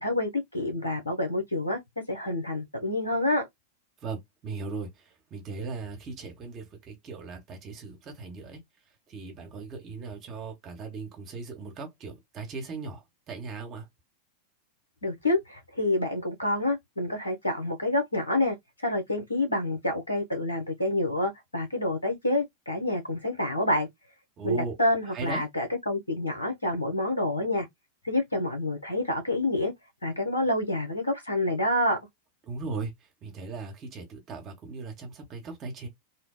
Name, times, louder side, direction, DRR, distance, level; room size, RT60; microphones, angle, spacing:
voice 1, 0.0-1.8 2.1-3.4 15.0-18.6 18.8-23.9 24.4-27.7 28.0-29.7 30.0-32.0, left 1 dB, 80° left, 1.0 m, -28 dB
voice 2, 4.0-8.6 9.1-13.9 24.4-24.8 25.1-25.5 32.5-32.9 33.2-35.9, right 4 dB, 35° right, 1.0 m, -38 dB
2.9 x 2.2 x 2.2 m
figure-of-eight pair, 90°, 0 cm